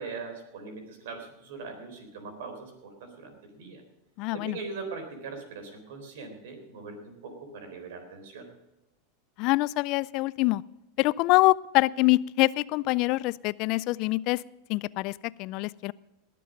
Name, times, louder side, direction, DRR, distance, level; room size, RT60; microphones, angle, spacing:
voice 1, 0.0-3.8 4.3-8.5, right 4 dB, 70° right, 6 dB, 3.9 m, -41 dB
voice 2, 4.2-4.6 9.4-10.6 11.0-14.4 14.7-15.9, left 20 dB, 55° left, 22 dB, 0.3 m, -25 dB
19.5 x 7.7 x 5.2 m, 0.97 s
hypercardioid pair, 105°, 0 cm